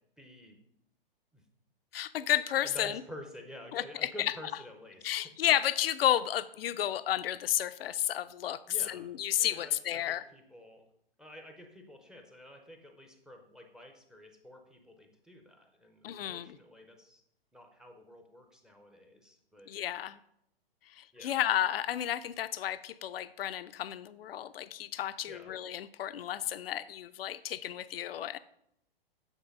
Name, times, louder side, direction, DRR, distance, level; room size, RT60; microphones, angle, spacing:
voice 1, 0.2-0.6 1.3-1.4 2.6-5.2 8.7-10.8 11.2-17.2 17.5-19.7 21.1-21.4 25.3-25.5, equal, ahead, 4 dB, 0.5 m, -50 dB
voice 2, 1.9-3.0 3.7-4.3 5.0-10.2 16.0-16.6 19.7-20.2 20.9-28.4, left 11 dB, 70° left, 14 dB, 0.5 m, -32 dB
8.1 x 3.9 x 5.1 m, 0.75 s
hypercardioid pair, 125°, 30 cm